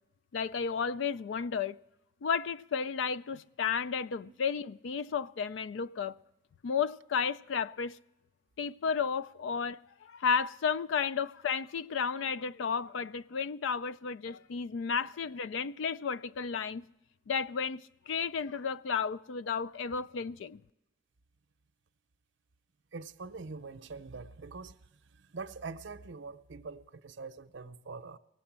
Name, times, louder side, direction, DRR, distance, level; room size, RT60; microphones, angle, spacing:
voice 1, 0.3-1.8 2.2-6.1 6.6-8.0 8.6-16.8 17.3-20.6, left 6 dB, 80° left, 0.4 m, -33 dB
voice 2, 22.9-24.7 25.3-28.2, right 4 dB, 70° right, 0.6 m, -44 dB
17.5 x 7.8 x 7.3 m
head